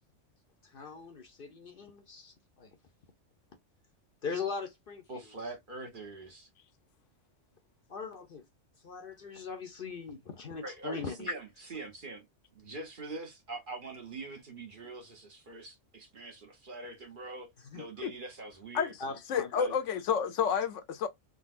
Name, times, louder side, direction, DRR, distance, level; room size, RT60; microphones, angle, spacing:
voice 1, 0.6-2.8 4.2-5.2 7.9-8.4 8.8-11.3 17.7-17.8 19.0-19.8, left 4 dB, 55° left, 0.8 m, -40 dB
voice 2, 5.1-6.5 10.6-12.3 12.5-18.9 19.6-19.7, right 3 dB, 45° right, 1.1 m, -43 dB
voice 3, 19.3-21.1, left 7 dB, 80° left, 1.0 m, -30 dB
3.8 x 2.2 x 2.4 m
omnidirectional pair, 1.3 m